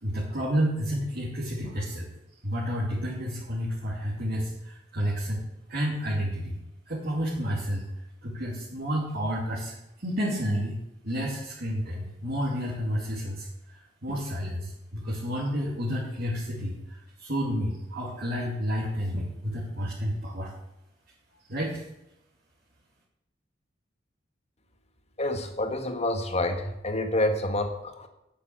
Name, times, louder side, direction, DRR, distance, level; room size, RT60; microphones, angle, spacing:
voice 1, 0.0-2.1 2.4-5.4 5.7-6.6 6.9-7.8 8.2-10.8 11.0-20.5 21.5-21.8, equal, 55° right, -6 dB, 2.6 m, -30 dB
voice 2, 25.2-28.1, left 1 dB, 35° left, 7 dB, 1.5 m, -28 dB
8.9 x 8.5 x 7.7 m, 0.87 s
head